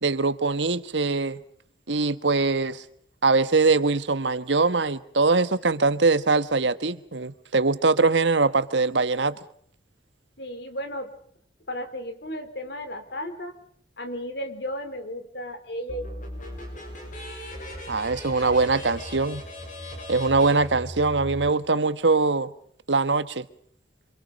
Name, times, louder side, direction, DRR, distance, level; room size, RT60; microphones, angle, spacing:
voice 1, 0.0-1.4 1.9-2.8 3.2-9.4 17.9-19.4 20.1-22.5 22.9-23.4, right 3 dB, 85° right, 1.4 m, -22 dB
voice 2, 10.4-11.1 11.7-13.5 14.0-16.1 18.4-19.0, equal, 70° left, 4.5 m, -34 dB
sound 1, 15.9-21.5, equal, 45° left, 7.5 m, -38 dB
27.5 x 26.0 x 5.3 m
head